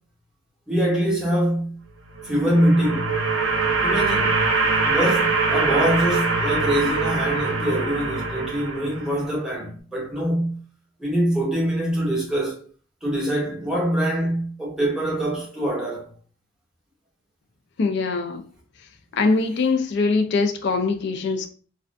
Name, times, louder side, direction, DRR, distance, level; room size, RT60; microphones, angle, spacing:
voice 1, 0.7-1.8 2.2-3.1 3.8-4.5 4.8-10.6 11.0-12.6 13.0-16.1 19.3-19.4, right 1 dB, 5° right, 0.7 m, -24 dB
sound 1, 2.1-9.3, right 4 dB, 65° right, 0.4 m, -23 dB
voice 2, 17.8-18.4 19.1-21.5, left 4 dB, 55° left, 0.4 m, -22 dB
2.4 x 2.4 x 2.2 m
head